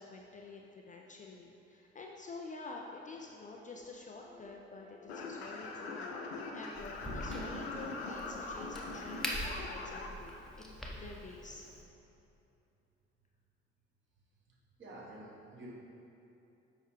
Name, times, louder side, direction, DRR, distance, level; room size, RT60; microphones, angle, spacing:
voice 1, 0.0-11.7, left 3 dB, 25° left, 0 dB, 0.5 m, -49 dB
sound 1, 3.5-3.8 4.1-4.5 4.8-5.1 5.4-6.4 6.7-7.0 7.3-7.6 8.0-8.6, equal, 80° right, 1.3 m, -58 dB
sound 2, 5.1-10.1, left 3 dB, 75° left, 0.6 m, -42 dB
Crack, 6.7-11.8, equal, ahead, 0.9 m, -43 dB
voice 2, 14.8-15.7, right 1 dB, 35° right, -3 dB, 1.3 m, -49 dB
6.7 x 5.4 x 3.1 m, 2.9 s
figure-of-eight pair, 50°, 32 cm